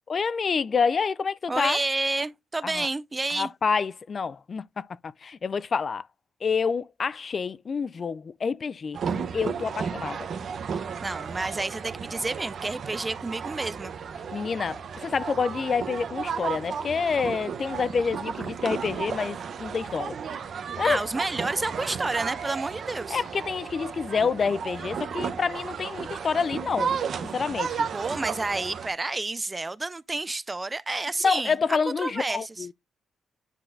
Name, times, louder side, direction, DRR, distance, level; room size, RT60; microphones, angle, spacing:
voice 1, 0.1-1.8 2.6-2.9 3.3-6.1 6.4-9.0 9.3-10.3 14.3-20.2 20.8-21.0 23.1-26.9 27.3-27.9 31.2-32.7, left 5 dB, 50° left, 0.3 m, -28 dB
voice 2, 1.5-3.5 10.8-13.9 20.8-23.2 27.9-31.6 32.0-32.7, right 2 dB, 25° right, 0.4 m, -30 dB
sound 1, 8.9-28.9, right 6 dB, 65° right, 0.9 m, -33 dB
9.8 x 3.9 x 2.6 m
cardioid pair, 80°, 0 cm